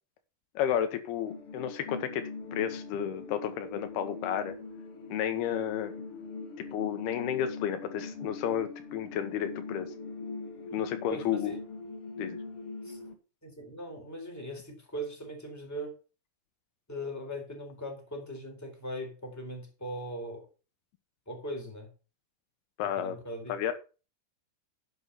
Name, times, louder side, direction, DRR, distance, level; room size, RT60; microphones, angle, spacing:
voice 1, 0.6-4.6 5.1-5.9 6.7-9.9 10.7-11.5 12.2-12.4 22.8-23.2 23.5-23.7, left 10 dB, 80° left, 3.0 m, -32 dB
sound 1, 1.2-13.1, left 4 dB, 45° left, 2.1 m, -42 dB
voice 2, 11.1-11.6 12.8-13.0 13.4-16.0 16.9-20.5 21.3-21.9 22.8-23.5, equal, 5° left, 3.6 m, -39 dB
11.0 x 7.9 x 5.5 m
omnidirectional pair, 4.6 m